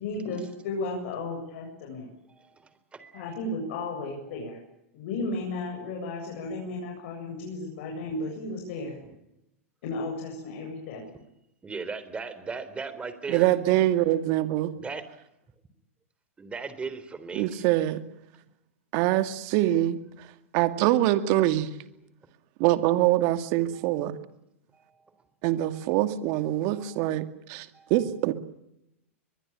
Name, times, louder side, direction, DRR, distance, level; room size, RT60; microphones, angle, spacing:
voice 1, 0.0-2.1 3.1-4.6 4.9-9.0 9.8-11.0, left 2 dB, 60° left, 0 dB, 7.7 m, -34 dB
voice 2, 2.3-3.5 4.3-4.6 9.0-9.2 11.6-13.5 14.8-15.0 16.4-17.7 23.7-24.1 24.7-25.0 25.7-26.0 26.7-27.1 27.7-27.9, right 4 dB, 15° right, 13 dB, 3.8 m, -39 dB
voice 3, 13.3-14.7 17.3-18.0 18.9-20.0 20.5-21.7 22.6-24.2 25.4-28.3, right 14 dB, 50° right, 10 dB, 2.2 m, -24 dB
23.0 x 22.0 x 8.9 m, 0.83 s
hypercardioid pair, 110°, 8 cm